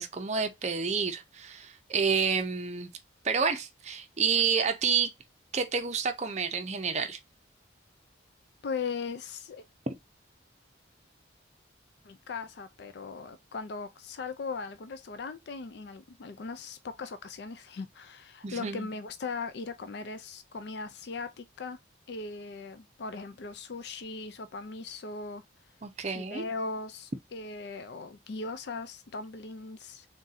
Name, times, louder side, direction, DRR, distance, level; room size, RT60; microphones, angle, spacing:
voice 1, 0.0-2.9 3.2-5.1 5.5-7.2 18.4-18.9 25.8-26.4, right 6 dB, 35° right, 0.6 m, -29 dB
voice 2, 8.6-9.6 12.0-21.8 22.1-25.4 26.0-30.1, left 4 dB, 55° left, 0.4 m, -39 dB
3.7 x 2.6 x 4.0 m
head